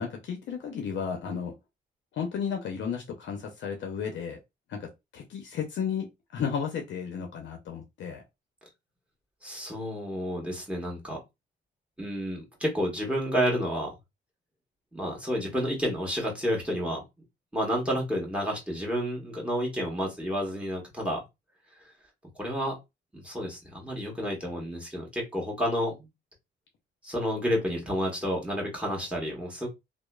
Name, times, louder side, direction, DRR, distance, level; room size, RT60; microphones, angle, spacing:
voice 1, 0.0-1.5 2.1-4.4 4.7-6.1 6.3-8.2, left 7 dB, 65° left, 0.6 m, -33 dB
voice 2, 9.4-11.2 12.0-13.9 14.9-17.0 17.5-21.2 21.8-21.9 22.4-22.8 23.1-26.1 27.0-29.7, equal, 5° right, 1.3 m, -30 dB
2.9 x 2.0 x 2.2 m
cardioid pair, 90°, 20 cm